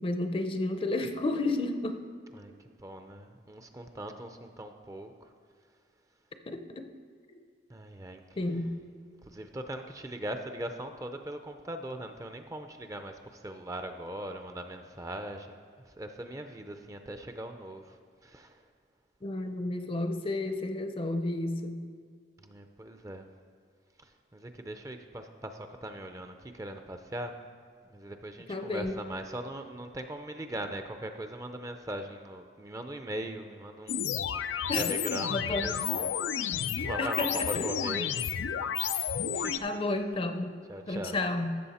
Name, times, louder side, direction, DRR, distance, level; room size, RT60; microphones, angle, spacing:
voice 1, 0.0-2.1 6.5-6.8 8.4-8.7 19.2-21.9 28.5-28.9 34.7-34.9 35.3-35.7 37.0-37.7 39.6-40.5 40.9-41.6, left 2 dB, 30° left, 7 dB, 0.6 m, -31 dB
voice 2, 2.4-5.1 7.7-8.2 9.3-15.6 16.0-18.0 18.2-18.6 22.4-23.3 24.3-27.3 27.9-34.1 34.7-36.2 36.8-38.2 39.3-39.6 40.7-41.2, right 1 dB, 20° right, 6 dB, 0.5 m, -40 dB
sound 1, 33.9-39.6, left 8 dB, 90° left, 0.4 m, -31 dB
14.0 x 7.1 x 4.2 m, 2.2 s
head